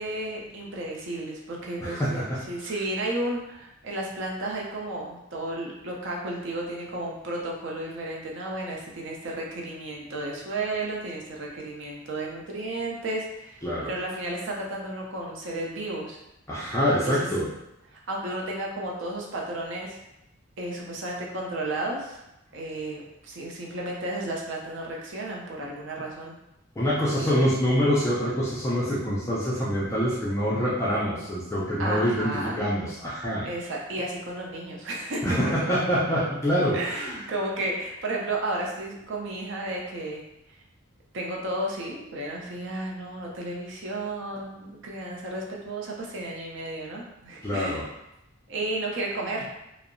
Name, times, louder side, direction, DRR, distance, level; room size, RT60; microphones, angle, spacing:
voice 1, 0.0-16.2 16.9-17.3 17.9-20.0 20.6-22.2 22.5-26.4 27.2-27.6 31.8-32.6 33.4-35.4 36.7-40.2 41.1-47.9 48.5-49.5, right 1 dB, 60° right, -2 dB, 0.5 m, -33 dB
voice 2, 1.8-2.4 13.6-13.9 16.5-17.5 26.8-33.5 35.2-37.2 47.4-47.8, equal, 15° left, -8 dB, 0.4 m, -25 dB
2.6 x 2.0 x 2.5 m, 0.88 s
head